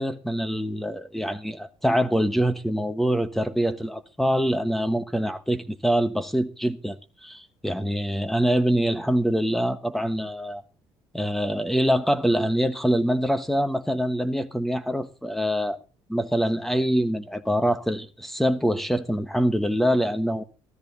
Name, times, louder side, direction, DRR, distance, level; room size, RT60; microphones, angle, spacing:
voice 1, 0.0-7.0 7.2-10.6 11.1-15.8 16.1-20.4, equal, 5° left, 1.1 m, -24 dB
14.5 x 13.0 x 4.1 m
cardioid pair, 140°, 10 cm